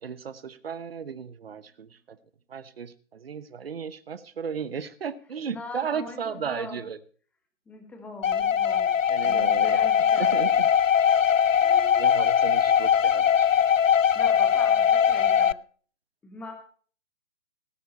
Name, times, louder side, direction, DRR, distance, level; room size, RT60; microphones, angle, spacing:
voice 1, 0.0-1.9 2.5-7.0 9.1-9.9 10.2-10.7 12.0-13.5, right 6 dB, 50° right, 16 dB, 1.0 m, -35 dB
voice 2, 5.5-6.8 7.7-8.9 9.2-10.4 11.6-12.1 14.1-15.6 16.2-16.5, left 3 dB, 5° left, 4 dB, 1.3 m, -41 dB
sound 1, 8.2-15.5, left 8 dB, 80° left, 0.5 m, -21 dB
18.0 x 9.3 x 4.1 m, 0.43 s
figure-of-eight pair, 135°, 38 cm